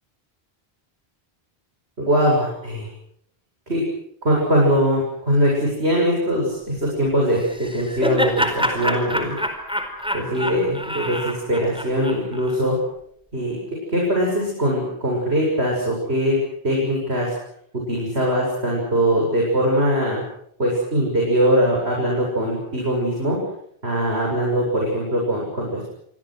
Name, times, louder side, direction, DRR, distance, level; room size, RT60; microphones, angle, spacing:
voice 1, 2.0-2.9 3.7-3.8 4.2-9.4 10.1-12.8 13.3-13.6 13.9-16.4 16.6-17.3 17.9-20.2 20.6-23.4 23.8-25.9, equal, 85° right, -2 dB, 7.8 m, -21 dB
Laughter, 7.4-12.6, equal, 5° right, 4.5 m, -26 dB
28.5 x 24.5 x 6.4 m, 0.69 s
omnidirectional pair, 1.1 m